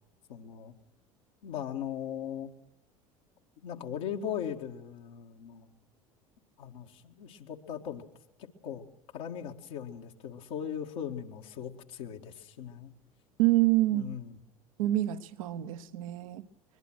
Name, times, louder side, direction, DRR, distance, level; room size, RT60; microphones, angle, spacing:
voice 1, 0.3-0.7 1.4-2.5 3.6-5.7 6.6-8.0 8.4-8.8 9.1-12.9 13.9-14.4, left 9 dB, 65° left, 2 dB, 2.0 m, -39 dB
voice 2, 13.4-14.1 14.8-16.5, right 16 dB, 70° right, 11 dB, 1.2 m, -27 dB
22.5 x 21.5 x 6.3 m, 0.89 s
figure-of-eight pair, 70°, 18 cm